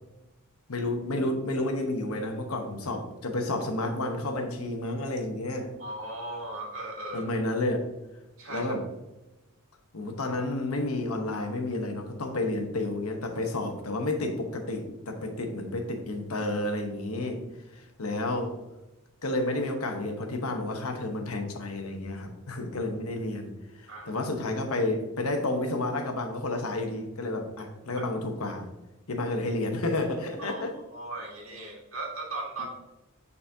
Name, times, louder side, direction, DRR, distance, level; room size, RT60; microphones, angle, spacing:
voice 1, 0.7-5.8 7.1-7.9 8.5-8.8 9.9-17.4 17.7-18.6 19.2-28.7 29.1-30.7 32.6-32.7, left 2 dB, 90° left, 4 dB, 1.0 m, -31 dB
voice 2, 5.8-7.3 8.4-8.7 23.9-24.2 28.0-28.1 30.4-30.6 30.9-32.7, right 2 dB, 70° right, 0 dB, 1.7 m, -37 dB
8.9 x 4.1 x 2.7 m, 1.0 s
head